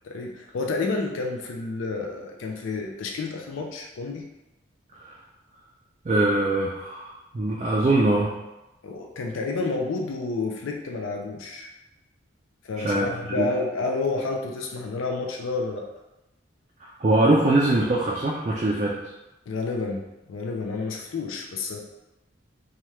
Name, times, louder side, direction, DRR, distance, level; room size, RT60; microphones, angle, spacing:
voice 1, 0.0-4.3 8.8-11.7 12.7-15.9 19.5-21.8, left 3 dB, 85° left, 1 dB, 0.4 m, -30 dB
voice 2, 6.1-8.4 12.8-13.5 16.8-19.0, right 2 dB, 35° right, -3 dB, 0.3 m, -23 dB
2.9 x 2.3 x 3.1 m, 0.96 s
head